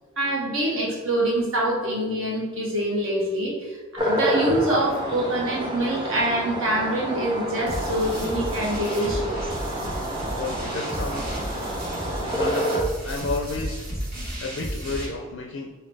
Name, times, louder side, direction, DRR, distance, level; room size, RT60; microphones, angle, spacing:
voice 1, 0.2-9.5, right 1 dB, 65° right, -3 dB, 1.2 m, -25 dB
sound 1, 4.0-12.8, equal, 20° right, 0.7 m, -29 dB
sound 2, 7.7-15.1, equal, 45° right, 1.5 m, -33 dB
voice 2, 10.3-11.5 12.2-13.9 14.4-15.7, left 3 dB, 55° left, 3 dB, 0.4 m, -32 dB
4.1 x 3.8 x 3.4 m, 1.3 s
head